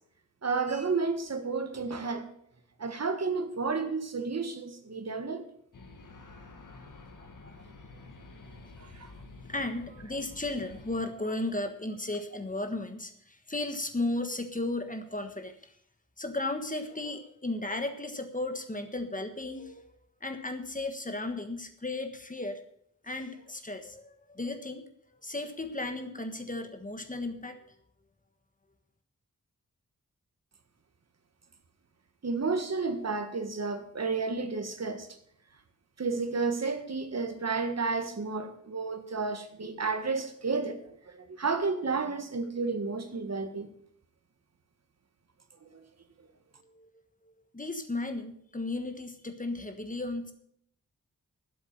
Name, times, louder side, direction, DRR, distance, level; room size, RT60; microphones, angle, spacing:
voice 1, 0.4-2.3 2.8-5.5 8.8-9.1 32.2-35.1 36.0-43.7 45.6-45.8, right 4 dB, 55° right, 1.6 m, -31 dB
sound 1, 5.7-11.1, left 3 dB, 75° left, 2.0 m, -50 dB
voice 2, 9.5-15.7 16.2-19.8 20.2-22.6 23.0-24.9 25.2-27.6 46.6-46.9 47.2-50.3, left 2 dB, 25° left, 1.4 m, -35 dB
11.5 x 8.0 x 7.5 m
wide cardioid pair, 105°, 32 cm